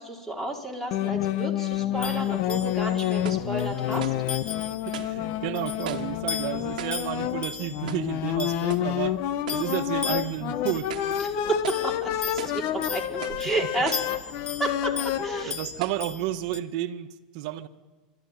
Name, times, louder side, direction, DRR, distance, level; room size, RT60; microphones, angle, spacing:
voice 1, 0.0-4.1 11.2-14.0 14.6-15.5, right 2 dB, 5° left, 4.5 m, -32 dB
sound 1, 0.9-15.4, left 12 dB, 55° left, 1.0 m, -29 dB
sound 2, 2.0-16.6, left 7 dB, 25° left, 1.1 m, -39 dB
sound 3, 3.2-3.5 4.0-4.3 4.9-5.2 5.8-6.2 6.8-7.1 7.9-8.2 8.7-8.9 9.5-9.7 10.2-10.3 10.8-11.2 11.6-11.9 12.4-12.6 13.2-13.5 13.8-14.2 14.9-15.0 15.8-16.1, right 11 dB, 85° right, 1.3 m, -39 dB
voice 2, 4.8-9.2 9.5-10.9 15.2-17.7, right 13 dB, 65° right, 1.3 m, -32 dB
28.0 x 13.0 x 9.3 m
hypercardioid pair, 110°, 4 cm